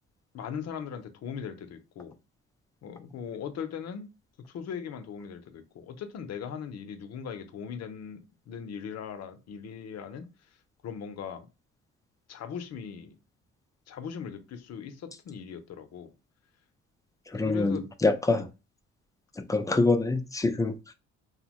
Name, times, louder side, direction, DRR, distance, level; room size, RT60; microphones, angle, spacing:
voice 1, 0.3-2.2 2.8-4.1 4.5-10.3 10.8-11.5 12.3-13.2 13.9-16.1 17.4-17.8 18.3-18.4, left 7 dB, 60° left, 0.6 m, -39 dB
voice 2, 17.3-18.5 19.4-20.9, left 3 dB, 10° left, 0.3 m, -26 dB
2.7 x 2.1 x 2.9 m
cardioid pair, 90°, 30 cm